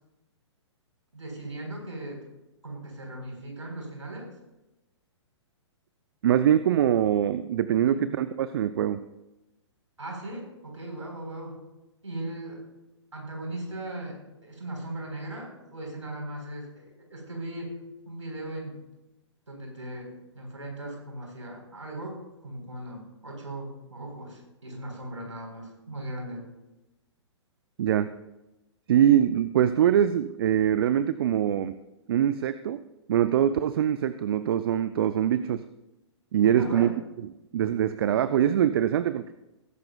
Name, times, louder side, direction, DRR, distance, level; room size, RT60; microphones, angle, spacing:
voice 1, 1.1-2.2 2.6-4.3 7.8-8.0 10.0-11.6 12.0-12.6 13.1-17.8 18.1-18.8 19.5-20.1 20.3-26.5 36.6-36.9, right 1 dB, 85° right, 0 dB, 4.2 m, -38 dB
voice 2, 6.2-9.0 27.8-28.1 28.9-31.7 32.1-32.8 33.1-35.6 36.3-39.3, right 10 dB, 55° right, 13 dB, 0.5 m, -23 dB
19.5 x 10.5 x 2.3 m, 0.99 s
figure-of-eight pair, 115°, 15 cm